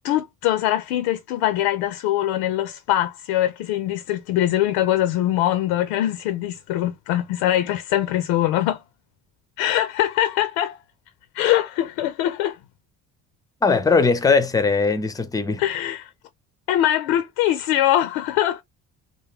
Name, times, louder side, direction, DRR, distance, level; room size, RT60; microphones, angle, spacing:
voice 1, 0.0-8.8 9.6-10.8 11.3-12.6 15.6-16.1 16.7-18.6, left 13 dB, 60° left, 0.5 m, -22 dB
voice 2, 13.6-15.6, left 4 dB, 10° left, 0.5 m, -19 dB
3.6 x 2.2 x 3.1 m
figure-of-eight pair, 45°, 47 cm